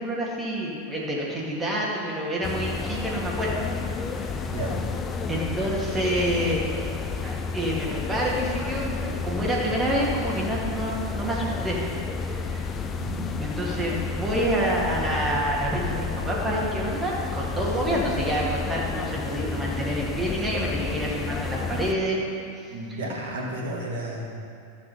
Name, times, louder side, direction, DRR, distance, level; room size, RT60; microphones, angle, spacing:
voice 1, 0.0-3.7 4.1-4.4 5.3-6.6 7.2-11.8 12.3-12.8 13.4-22.2 22.6-23.0, right 1 dB, 15° right, -4 dB, 2.0 m, -28 dB
sound 1, 2.4-21.9, left 4 dB, 20° left, 0.6 m, -31 dB
voice 2, 4.5-4.8 12.9-13.3 22.7-24.3, right 1 dB, 55° right, -3 dB, 2.0 m, -32 dB
12.0 x 7.3 x 4.3 m, 2.4 s
figure-of-eight pair, 90°, 0 cm